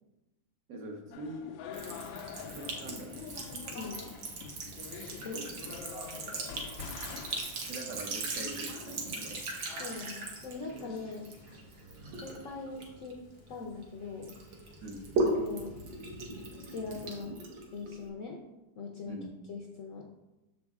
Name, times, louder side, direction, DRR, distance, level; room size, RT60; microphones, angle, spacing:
voice 1, 0.7-1.5 2.5-3.2 5.3-6.1 7.7-9.4 14.8-15.0 19.1-19.3, right 1 dB, 55° right, 1 dB, 1.1 m, -43 dB
sound 1, 1.1-17.2, left 7 dB, 85° left, 1.4 m, -48 dB
Sink (filling or washing) / Trickle dribble, 1.7-13.9 14.2-18.1, right 2 dB, 75° right, 1.9 m, -38 dB
voice 2, 3.7-4.0 5.2-5.4 9.8-11.3 12.2-13.2 13.5-14.3 15.3-15.8 16.7-17.4 17.7-18.4 18.8-19.2 19.5-20.1, left 4 dB, 60° left, 0 dB, 0.8 m, -41 dB
6.9 x 5.3 x 3.5 m, 1.0 s
omnidirectional pair, 2.1 m